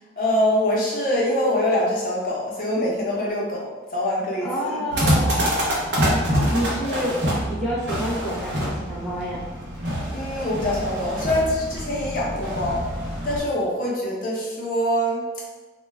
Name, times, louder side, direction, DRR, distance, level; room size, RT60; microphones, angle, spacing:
voice 1, 0.2-4.9 10.1-12.9 13.2-15.2, left 1 dB, 45° left, -5 dB, 0.6 m, -24 dB
voice 2, 4.4-5.3 6.0-6.2 6.5-7.2 7.5-9.4, equal, ahead, -8 dB, 0.3 m, -28 dB
sound 1, 4.9-13.4, equal, 70° right, 0.6 m, -26 dB
2.2 x 2.1 x 3.2 m, 1.2 s
head